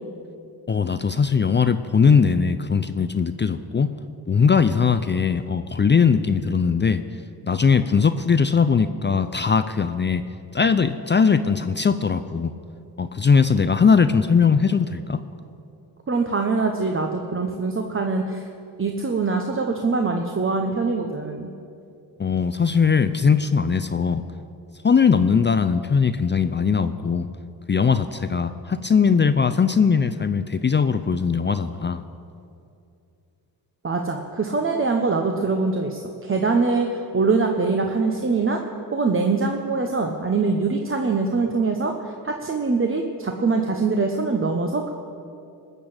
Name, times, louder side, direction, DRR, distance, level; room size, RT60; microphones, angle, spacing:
voice 1, 0.7-3.9 4.3-7.0 7.4-10.2 10.5-12.5 13.0-15.2 22.2-24.2 24.8-27.3 27.7-32.0, left 6 dB, 30° left, 11 dB, 0.5 m, -20 dB
voice 2, 16.1-18.5 18.8-21.5 33.8-38.6 38.9-44.9, right 4 dB, 30° right, 3 dB, 1.1 m, -23 dB
20.0 x 6.8 x 8.9 m, 2.6 s
cardioid pair, 95°, 39 cm